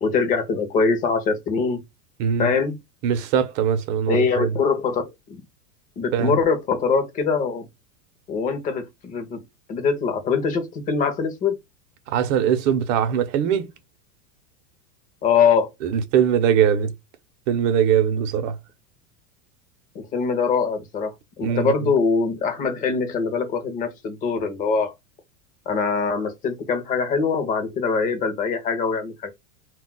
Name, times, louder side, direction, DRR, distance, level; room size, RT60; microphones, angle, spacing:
voice 1, 0.0-1.8 2.4-2.8 4.1-5.4 6.0-7.7 8.3-9.4 9.7-11.6 15.2-15.7 20.0-24.9 25.7-29.3, left 5 dB, 20° left, 0.4 m, -23 dB
voice 2, 2.2-2.5 3.0-4.6 6.1-6.3 12.1-13.7 15.8-16.9 17.5-18.6 21.4-21.9, right 8 dB, 55° right, 0.7 m, -21 dB
2.3 x 2.0 x 3.7 m
supercardioid pair, 140°, 46 cm